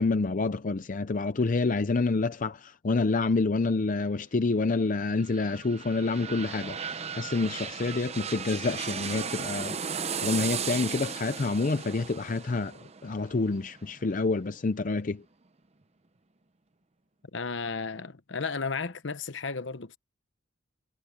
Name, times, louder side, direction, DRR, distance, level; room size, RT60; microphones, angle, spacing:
voice 1, 0.0-12.8 13.0-15.2, left 3 dB, 40° left, 0.5 m, -28 dB
sound 1, 4.9-14.6 15.0-15.1, right 7 dB, 30° right, 0.7 m, -36 dB
voice 2, 17.3-20.0, left 4 dB, 65° left, 1.0 m, -33 dB
head